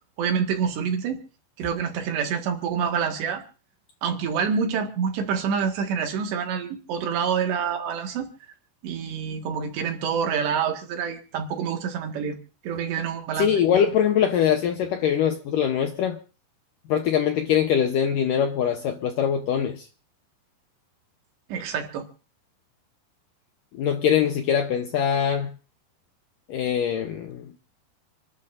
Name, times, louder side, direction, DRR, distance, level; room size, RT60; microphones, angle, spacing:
voice 1, 0.2-1.2 1.6-3.4 4.0-8.3 8.8-12.4 12.6-13.5 21.5-22.1, right 7 dB, 75° right, 4.0 m, -27 dB
voice 2, 13.4-16.2 16.9-19.9 23.7-25.5 26.5-27.5, left 8 dB, 75° left, 2.0 m, -23 dB
29.0 x 12.0 x 2.6 m
omnidirectional pair, 5.0 m